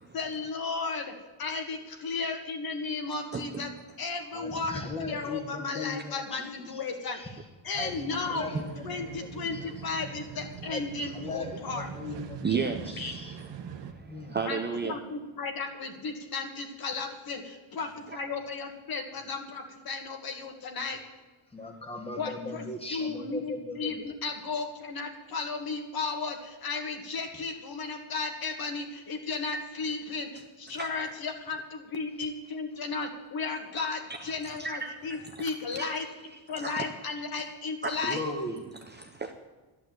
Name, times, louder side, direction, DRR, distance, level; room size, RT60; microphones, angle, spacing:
voice 1, 0.1-3.7 4.0-7.2 7.6-8.5 8.8-11.9 13.0-13.1 14.5-21.0 22.1-36.1 36.5-38.2, left 4 dB, 45° left, 4 dB, 2.0 m, -34 dB
voice 2, 3.3-3.7 8.5-8.6 9.0-9.2 9.6-9.7 12.4-15.0 17.8-18.2 30.7-30.9 34.2-34.3 34.6-35.5 35.7-35.9 36.6-36.8 38.8-39.3, right 5 dB, 20° right, 4 dB, 0.7 m, -35 dB
voice 3, 4.3-7.3 7.7-9.6 10.7-12.8 13.1-13.4 14.1-14.4 21.5-24.1 38.0-38.7, left 2 dB, 10° left, 3 dB, 1.7 m, -38 dB
sound 1, 7.7-13.9, right 7 dB, 55° right, 1.3 m, -43 dB
11.5 x 11.0 x 7.8 m, 1.2 s
cardioid pair, 155°, 50 cm